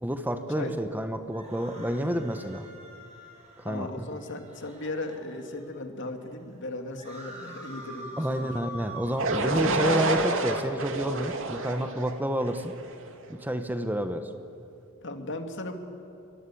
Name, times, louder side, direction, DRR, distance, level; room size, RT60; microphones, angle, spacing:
voice 1, 0.0-2.7 3.6-4.0 8.2-12.7 13.3-14.3, equal, 10° right, 8 dB, 1.1 m, -29 dB
sound 1, 1.2-5.7 6.2-6.3 6.5-9.6, right 1 dB, 30° right, 7.4 m, -45 dB
voice 2, 3.6-8.5 9.6-10.2 15.0-15.8, left 2 dB, 55° left, 5 dB, 2.4 m, -36 dB
sound 2, 9.2-13.1, right 3 dB, 65° right, 2.6 m, -29 dB
29.0 x 22.5 x 8.6 m, 2.6 s
head